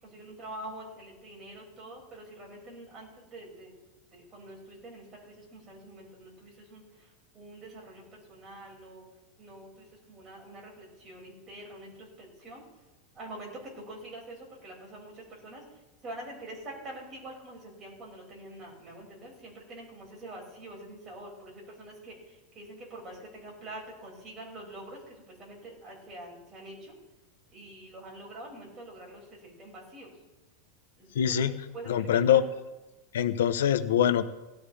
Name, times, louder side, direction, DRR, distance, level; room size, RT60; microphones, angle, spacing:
voice 1, 0.0-3.7 4.1-7.1 7.3-9.0 9.4-12.6 13.1-15.6 16.0-27.0 27.5-30.1 31.0-31.4 31.7-32.4, right 1 dB, 25° right, -2 dB, 6.0 m, -45 dB
voice 2, 31.1-31.5 31.9-32.4 33.1-34.2, left 9 dB, 90° left, 10 dB, 0.9 m, -24 dB
17.5 x 13.5 x 3.5 m, 1.1 s
supercardioid pair, 145°, 0 cm